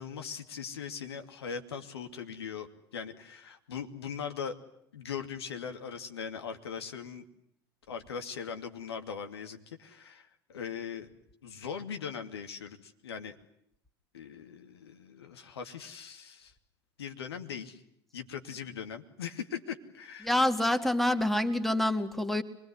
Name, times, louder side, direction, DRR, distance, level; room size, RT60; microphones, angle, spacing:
voice 1, 0.0-4.6 4.9-7.2 7.9-11.1 11.4-13.4 14.1-16.5 17.0-17.8 18.1-20.3, left 7 dB, 80° left, 6 dB, 2.6 m, -40 dB
voice 2, 20.2-22.4, left 1 dB, ahead, 8 dB, 2.3 m, -27 dB
26.0 x 21.5 x 9.7 m, 0.73 s
hypercardioid pair, 85°, 13 cm